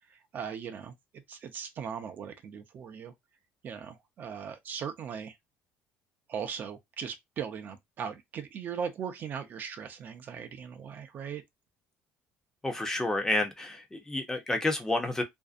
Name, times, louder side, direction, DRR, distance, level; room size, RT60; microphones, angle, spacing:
voice 1, 0.1-3.1 3.6-5.4 6.3-11.4, right 7 dB, 45° right, 0.5 m, -39 dB
voice 2, 12.6-15.2, left 2 dB, 10° left, 0.6 m, -30 dB
2.6 x 2.0 x 2.4 m
cardioid pair, 120°, 4 cm